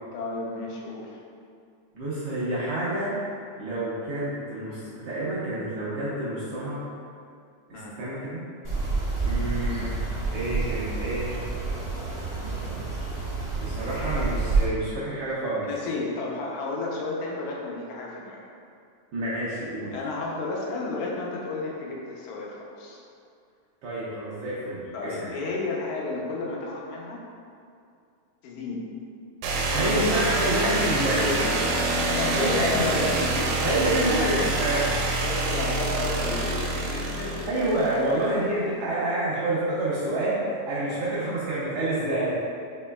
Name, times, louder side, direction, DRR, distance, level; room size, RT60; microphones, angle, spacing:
voice 1, 0.1-1.2 7.7-7.9 15.6-18.4 19.9-23.0 24.9-27.2 28.4-28.8 29.7-30.8 31.1-31.5 31.8-34.4 35.2-38.3 38.6-38.7 40.8-40.9, left 3 dB, 80° left, -2 dB, 2.1 m, -32 dB
voice 2, 1.9-3.2 3.6-6.8 7.7-8.4 9.2-10.0 10.3-11.4 13.5-15.7 19.1-19.9 23.8-25.3 29.5-31.3 32.3-33.1 33.6-34.9 37.5-42.3, right 1 dB, 75° right, -9 dB, 1.4 m, -28 dB
sound 1, 8.6-14.6, right 3 dB, 40° right, 0.8 m, -28 dB
sound 2, 29.4-38.2, right 2 dB, 90° right, 2.0 m, -26 dB
7.0 x 3.0 x 2.3 m, 2.4 s
omnidirectional pair, 3.4 m